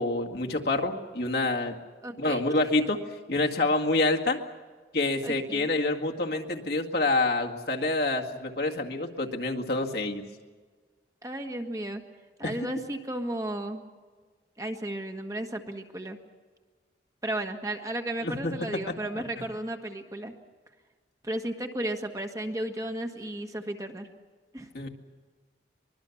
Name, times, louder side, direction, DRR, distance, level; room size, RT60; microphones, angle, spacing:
voice 1, 0.0-1.8 2.2-3.0 3.3-4.4 4.9-10.2 12.4-12.5 18.2-18.5 24.7-24.9, left 2 dB, 60° left, 1 dB, 2.1 m, -27 dB
voice 2, 2.0-2.6 5.2-5.7 11.2-12.0 12.4-13.8 14.6-16.2 17.2-20.3 21.2-24.1 24.5-24.7, right 1 dB, 20° right, 4 dB, 1.5 m, -34 dB
24.0 x 22.0 x 7.2 m, 1.5 s
head